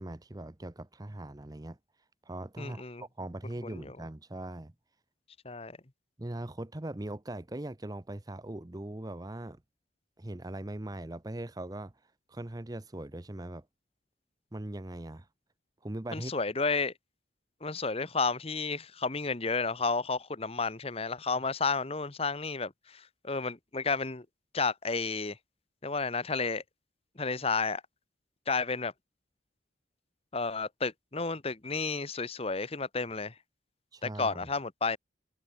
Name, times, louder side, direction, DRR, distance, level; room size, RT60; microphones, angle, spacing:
voice 1, 0.0-1.8 2.3-4.7 6.2-9.6 10.2-11.9 12.3-13.7 14.5-15.3 15.8-16.3 33.9-34.5, right 1 dB, 20° right, 0.7 m, -40 dB
voice 2, 2.6-3.0 3.6-4.0 5.4-5.8 16.1-16.9 17.6-24.3 24.5-25.4 25.8-26.6 27.2-27.8 28.5-28.9 30.3-33.3 34.0-35.0, left 4 dB, 30° left, 1.1 m, -32 dB
head